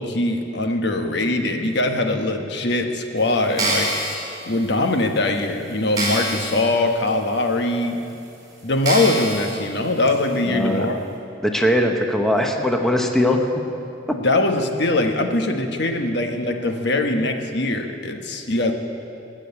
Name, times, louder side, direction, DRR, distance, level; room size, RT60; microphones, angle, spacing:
voice 1, 0.0-3.9 4.5-8.0 8.6-11.0 14.1-18.7, left 2 dB, 65° left, 4 dB, 1.1 m, -22 dB
sound 1, 3.4-4.1 4.8-4.9 5.4-5.5 5.9-6.6 7.1-7.2 7.9-8.0 8.8-9.5 10.1-10.2, right 1 dB, 20° right, 3.6 m, -25 dB
voice 2, 10.4-10.9 11.4-13.4, left 1 dB, ahead, 2 dB, 0.8 m, -20 dB
19.0 x 6.4 x 8.7 m, 2.7 s
head